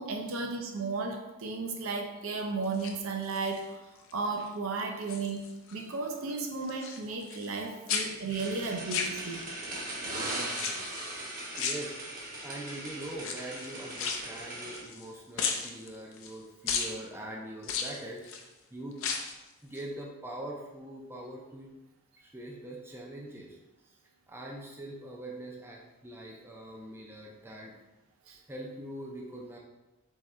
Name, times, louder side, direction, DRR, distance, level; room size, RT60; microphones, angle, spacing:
voice 1, 0.0-3.8 4.1-5.5 5.7-9.4 28.3-28.4, right 4 dB, 60° right, 3 dB, 0.6 m, -34 dB
sound 1, 2.6-3.6 4.1-4.5 4.8-5.8 6.1-7.6 7.9-9.7 10.5-11.1 11.5-12.4 13.1-15.1 15.4-16.3 16.7-16.9 17.6-18.4 18.9-19.4 19.7-19.8, left 6 dB, 60° left, 0.5 m, -35 dB
sound 2, 8.3-14.8, right 1 dB, 35° right, 1.1 m, -39 dB
voice 2, 11.6-19.0 19.6-21.7 22.2-23.6 23.8-23.9 24.3-27.7 28.5-29.6, right 1 dB, 10° right, -2 dB, 0.4 m, -43 dB
3.6 x 3.1 x 4.3 m, 1.0 s
head